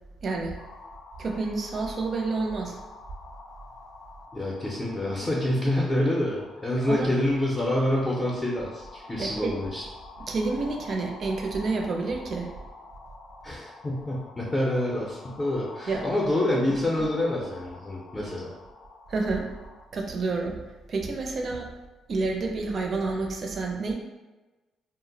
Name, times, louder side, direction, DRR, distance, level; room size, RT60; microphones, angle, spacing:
voice 1, 0.2-0.6 1.2-2.8 6.9-7.1 9.2-9.6 10.3-12.5 15.9-16.0 19.1-19.5 19.9-20.6 20.9-21.7 22.1-23.9, right 3 dB, 50° right, 1 dB, 0.5 m, -29 dB
sound 1, 0.6-19.9, left 3 dB, 85° left, 0.4 m, -48 dB
voice 2, 4.3-9.8 13.4-18.5, left 1 dB, 20° left, -4 dB, 0.6 m, -27 dB
2.2 x 2.1 x 3.8 m, 1.1 s
cardioid pair, 90°, 0 cm